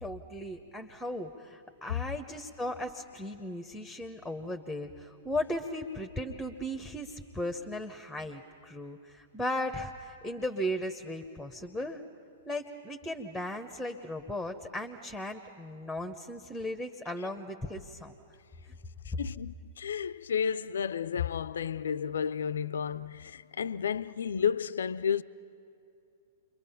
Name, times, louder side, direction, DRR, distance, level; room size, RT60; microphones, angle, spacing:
voice 1, 0.0-12.0 12.5-18.1 18.6-18.8, left 1 dB, ahead, 1.0 m, -36 dB
voice 2, 19.1-25.2, left 7 dB, 70° left, 0.4 m, -32 dB
29.0 x 23.0 x 5.7 m
figure-of-eight pair, 110°, 0 cm